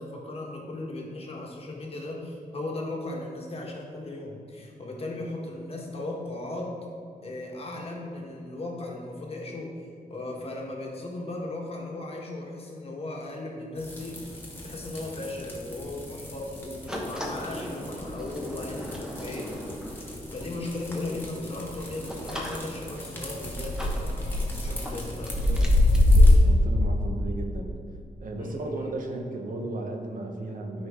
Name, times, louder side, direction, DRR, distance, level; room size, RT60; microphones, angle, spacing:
voice 1, 0.0-6.7 7.2-9.7 10.1-14.3 14.6-19.5 20.3-25.7 27.3-27.4 28.4-28.9, left 2 dB, 40° left, -1 dB, 1.4 m, -37 dB
sound 1, 13.8-26.3, left 1 dB, 15° left, 1.5 m, -27 dB
sound 2, 16.9-26.1, equal, 5° right, 1.1 m, -40 dB
voice 2, 26.0-27.7 28.2-30.9, right 2 dB, 65° right, 3 dB, 1.0 m, -35 dB
13.0 x 5.2 x 3.7 m, 2.4 s
wide cardioid pair, 165°, 15 cm